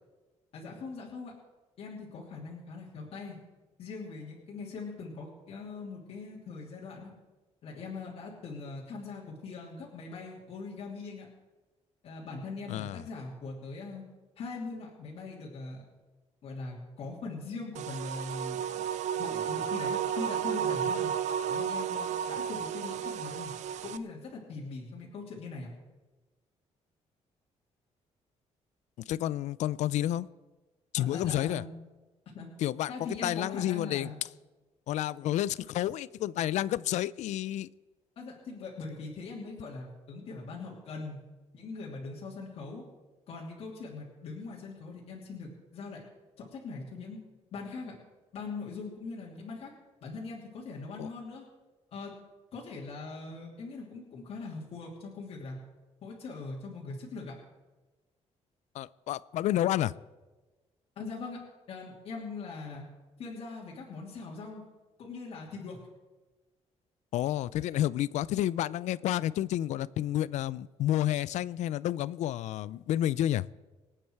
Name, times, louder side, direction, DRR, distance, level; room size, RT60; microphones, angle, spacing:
voice 1, 0.5-1.3 1.8-3.4 3.8-7.1 7.6-11.3 12.0-14.0 14.4-15.8 16.4-18.8 19.1-21.1 21.4-23.5 23.8-25.7 31.0-31.7 32.3-32.5 32.9-34.2 38.2-41.2 41.5-42.8 43.3-46.0 46.4-47.2 47.5-47.9 48.3-49.7 50.0-51.5 51.9-52.1 52.5-55.6 56.0-57.3 61.0-62.9 63.2-64.6 65.0-65.8, left 3 dB, 55° left, -3 dB, 2.8 m, -41 dB
voice 2, 12.7-13.0 29.1-30.3 30.9-31.6 32.6-32.9 33.2-34.1 34.9-37.7 51.0-51.1 58.7-59.9 67.1-73.5, left 13 dB, 80° left, 20 dB, 0.4 m, -30 dB
sound 1, 17.7-24.0, right 8 dB, 80° right, 0.6 m, -32 dB
25.5 x 8.9 x 4.6 m, 1.2 s
cardioid pair, 170°, 12 cm